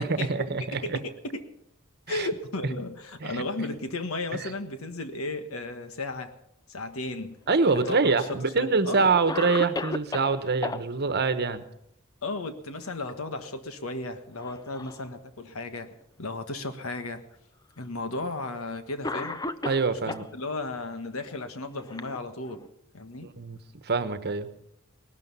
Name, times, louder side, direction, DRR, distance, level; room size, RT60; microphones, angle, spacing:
voice 1, 0.0-1.0 2.1-2.3 3.2-3.4 7.5-11.6 19.6-20.3 23.4-23.6 23.8-24.5, right 4 dB, 50° right, 11 dB, 1.1 m, -25 dB
voice 2, 0.7-1.4 2.1-6.3 6.7-7.4 7.7-9.1 12.2-15.9 16.2-17.2 17.8-19.4 19.9-22.6 22.9-23.3, left 2 dB, 80° left, 9 dB, 1.5 m, -34 dB
Cough, 7.5-8.3 8.9-9.0 9.3-10.8 12.7-13.1 13.4-13.6 14.4-15.1 15.9-16.0 17.0-17.1 18.2-18.4 19.0-20.3 21.3-22.7, left 2 dB, 20° left, 0.6 m, -35 dB
19.0 x 12.0 x 5.6 m, 0.76 s
head